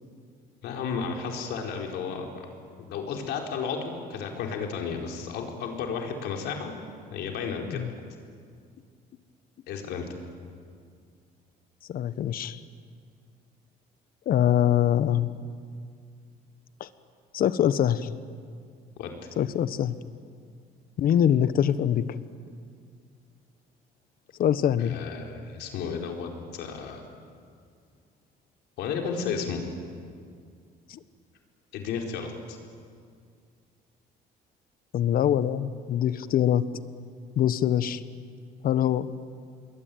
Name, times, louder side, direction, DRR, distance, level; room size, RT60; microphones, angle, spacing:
voice 1, 0.6-2.3 2.8-6.7 7.1-7.8 9.7-10.1 19.0-19.2 24.8-27.1 28.8-29.6 31.7-32.6, left 6 dB, 80° left, 2 dB, 4.5 m, -33 dB
voice 2, 11.9-12.6 14.3-15.3 16.8-16.9 17.3-18.1 19.4-19.9 21.0-22.2 24.4-25.0 30.9-31.0 34.9-36.6 37.4-38.0 38.6-39.1, left 10 dB, 60° left, 14 dB, 1.2 m, -24 dB
28.0 x 22.0 x 9.3 m, 2.2 s
cardioid pair, 110°, 17 cm